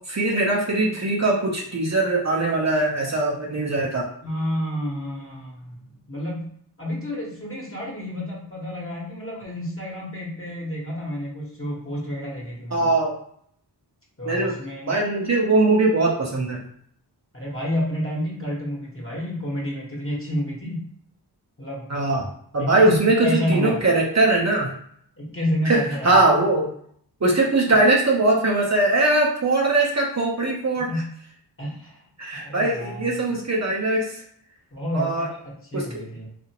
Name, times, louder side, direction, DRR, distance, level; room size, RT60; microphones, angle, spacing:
voice 1, 0.1-4.1 12.7-13.1 14.3-14.5 14.9-16.6 21.9-22.3 22.5-24.7 25.6-26.7 27.2-30.9 32.2-34.1 34.9-35.3 35.7-35.9, right 2 dB, 40° right, -3 dB, 0.7 m, -21 dB
voice 2, 4.2-6.5 6.8-12.9 14.2-15.0 17.3-20.9 21.6-21.9 22.6-23.0 23.2-23.8 25.2-26.2 30.9-31.1 31.6-32.1 32.3-33.4 34.7-36.3, equal, 30° left, -4 dB, 1.2 m, -30 dB
2.7 x 2.5 x 2.9 m, 0.65 s
cardioid pair, 45°, 41 cm